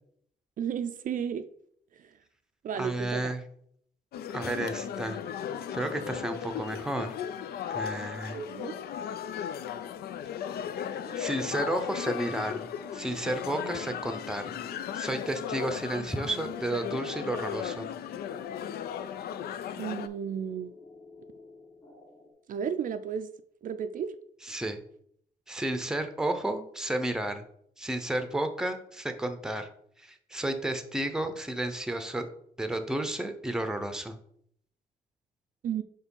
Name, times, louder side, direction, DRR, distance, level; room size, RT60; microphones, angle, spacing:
voice 1, 0.6-1.4 2.6-3.3 8.3-8.7 19.8-20.7 22.5-23.3 23.6-24.1 35.6-35.8, right 8 dB, 60° right, 9 dB, 0.4 m, -33 dB
voice 2, 2.7-3.4 4.3-5.2 5.7-7.1 7.7-8.4 11.1-12.6 12.9-14.6 14.9-17.9 24.4-24.8 25.5-27.4 27.8-29.7 30.0-32.3 32.6-34.2, right 1 dB, 5° right, 8 dB, 0.6 m, -32 dB
sound 1, 4.1-20.1, left 9 dB, 90° left, 0.4 m, -36 dB
sound 2, 10.5-22.3, left 3 dB, 20° left, 2.0 m, -52 dB
4.8 x 3.7 x 5.3 m, 0.68 s
cardioid pair, 115°, 16 cm